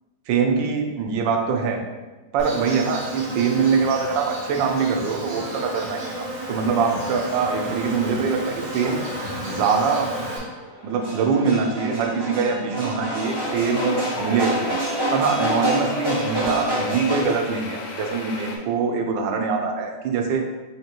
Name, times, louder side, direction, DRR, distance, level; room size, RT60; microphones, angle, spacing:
voice 1, 0.3-1.8 2.3-9.0 9.5-10.1 10.8-14.7 15.1-20.4, right 5 dB, 85° right, 3 dB, 1.3 m, -23 dB
Insect, 2.4-10.4, equal, 50° right, 1.3 m, -32 dB
sound 1, 6.7-17.3, equal, 25° right, 0.5 m, -29 dB
sound 2, 13.2-18.6, left 2 dB, 75° left, 0.7 m, -36 dB
4.9 x 2.8 x 2.9 m, 1.2 s
omnidirectional pair, 2.0 m